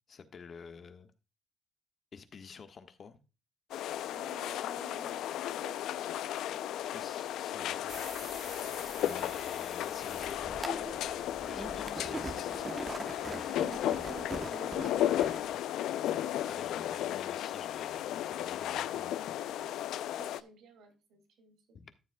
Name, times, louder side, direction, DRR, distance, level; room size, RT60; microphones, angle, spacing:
voice 1, 0.1-1.1 2.1-3.2 6.9-8.4 9.0-10.9 11.4-13.0 16.5-19.1 21.7-21.9, left 6 dB, 50° left, 1.4 m, -49 dB
sound 1, 3.7-20.4, left 12 dB, 85° left, 0.5 m, -35 dB
voice 2, 4.1-6.6 9.0-9.2 11.4-11.6 13.1-15.3 16.0-16.6 20.2-21.6, right 4 dB, 85° right, 2.5 m, -51 dB
sound 2, 7.9-15.6, right 2 dB, 25° right, 1.0 m, -43 dB
13.5 x 7.5 x 2.3 m
cardioid pair, 90°, 0 cm